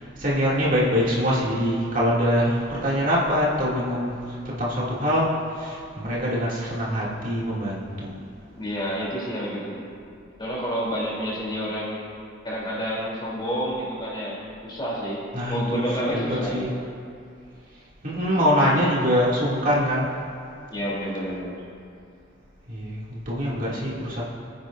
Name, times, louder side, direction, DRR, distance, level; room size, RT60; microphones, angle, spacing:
voice 1, 0.2-4.1 4.4-8.1 15.3-15.8 16.1-16.2 16.5-16.7 18.0-20.1 22.7-24.2, equal, 45° right, -7 dB, 2.6 m, -24 dB
voice 2, 8.6-9.9 10.4-12.0 12.4-16.8 18.3-18.6 20.7-21.6 23.7-23.8, equal, 25° left, -5 dB, 3.4 m, -29 dB
25.0 x 9.6 x 2.7 m, 2.4 s
head